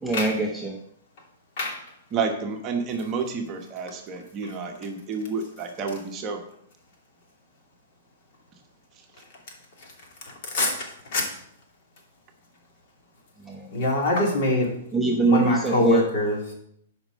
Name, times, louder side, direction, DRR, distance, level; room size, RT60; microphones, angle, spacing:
voice 1, 0.0-0.8 13.5-13.8 14.9-16.0, right 2 dB, ahead, -2 dB, 0.8 m, -23 dB
voice 2, 2.1-6.4 8.9-9.0, right 5 dB, 25° right, 3 dB, 1.0 m, -30 dB
voice 3, 10.2-11.3 13.7-14.7 15.2-16.5, left 2 dB, 50° left, -1 dB, 3.0 m, -25 dB
8.7 x 5.4 x 6.4 m, 0.71 s
hypercardioid pair, 155°, 0 cm